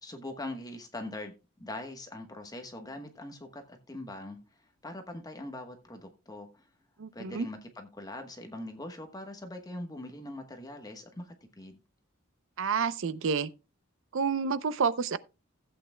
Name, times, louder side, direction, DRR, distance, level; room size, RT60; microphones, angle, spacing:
voice 1, 0.0-1.3 1.6-6.7 7.1-11.8, left 1 dB, 20° left, 1.1 m, -42 dB
voice 2, 7.0-7.5 12.6-13.5 14.1-15.2, right 5 dB, 65° right, 0.6 m, -29 dB
16.0 x 8.5 x 2.2 m
head